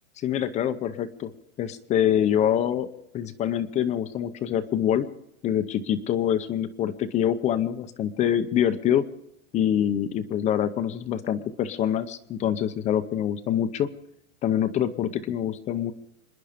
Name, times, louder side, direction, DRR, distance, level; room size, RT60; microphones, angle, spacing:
voice 1, 0.2-1.3 1.6-2.9 3.1-5.1 5.4-9.0 9.5-13.9 14.4-15.9, left 10 dB, 20° left, 11 dB, 0.6 m, -25 dB
26.5 x 10.5 x 5.1 m, 0.84 s
supercardioid pair, 165°, 39 cm